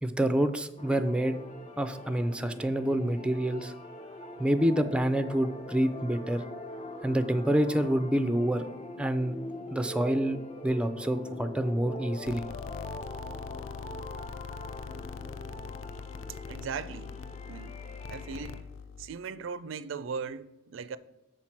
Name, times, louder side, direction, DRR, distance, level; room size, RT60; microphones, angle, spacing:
voice 1, 0.0-1.4 1.8-3.7 4.4-6.4 7.0-8.6 9.0-9.4 9.7-10.4 10.6-12.5, right 1 dB, 5° right, 0.4 m, -27 dB
sound 1, 0.8-18.6, left 1 dB, 35° left, 0.7 m, -43 dB
sound 2, 12.3-19.1, left 6 dB, 85° left, 0.3 m, -42 dB
voice 2, 16.5-17.1 17.5-17.8 18.1-18.6 19.0-21.0, right 5 dB, 85° right, 0.4 m, -38 dB
6.6 x 4.4 x 5.8 m
head